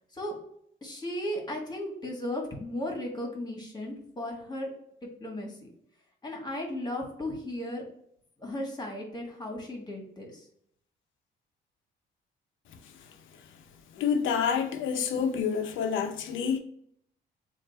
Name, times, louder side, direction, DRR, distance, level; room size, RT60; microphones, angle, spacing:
voice 1, 0.8-4.7 5.2-5.7 6.2-7.8 8.4-10.5, left 1 dB, 20° left, 1.3 m, -35 dB
voice 2, 14.0-16.6, left 7 dB, 80° left, 0.6 m, -28 dB
3.3 x 2.5 x 4.1 m
cardioid pair, 90°, 20 cm